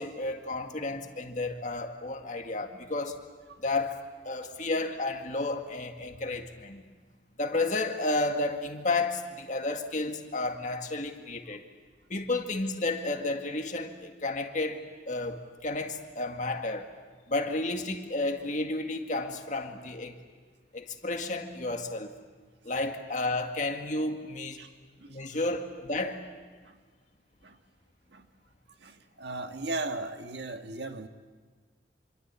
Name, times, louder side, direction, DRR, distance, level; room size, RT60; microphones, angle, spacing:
voice 1, 0.0-3.2 3.6-4.0 4.2-6.8 7.4-11.6 12.1-16.9 17.3-20.1 20.7-22.1 22.6-24.6 25.1-26.2, left 2 dB, 45° left, 5 dB, 2.0 m, -32 dB
voice 2, 28.8-31.1, right 2 dB, 70° right, 6 dB, 1.6 m, -37 dB
26.5 x 25.0 x 8.5 m, 1.5 s
head